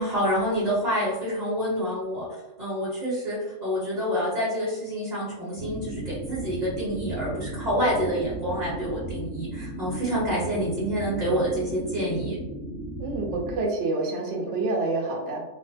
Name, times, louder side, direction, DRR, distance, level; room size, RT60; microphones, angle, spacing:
voice 1, 0.0-2.3 2.6-12.4, equal, 35° right, -9 dB, 1.0 m, -27 dB
sound 1, 5.6-13.6, right 1 dB, 85° left, 1.1 m, -35 dB
voice 2, 13.0-15.4, right 2 dB, 60° right, 0 dB, 0.9 m, -27 dB
3.0 x 2.1 x 2.7 m, 1.0 s
omnidirectional pair, 1.4 m